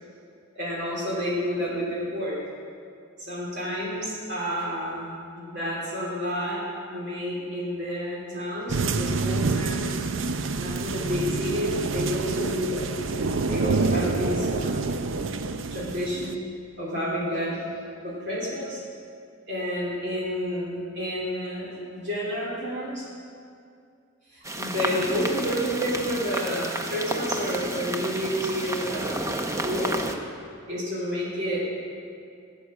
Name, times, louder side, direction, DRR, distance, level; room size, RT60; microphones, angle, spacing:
voice 1, 0.5-2.4 3.2-10.1 10.5-12.9 13.5-14.9 15.7-16.4 16.8-17.6 18.0-18.8 19.5-23.1 24.3-29.2 29.6-29.9 30.7-31.7, equal, 60° right, -6 dB, 3.2 m, -30 dB
sound 1, 8.7-16.4, right 4 dB, 80° right, 0.6 m, -27 dB
sound 2, 24.4-30.2, right 1 dB, 15° right, 0.7 m, -31 dB
16.5 x 8.5 x 6.4 m, 2.3 s
head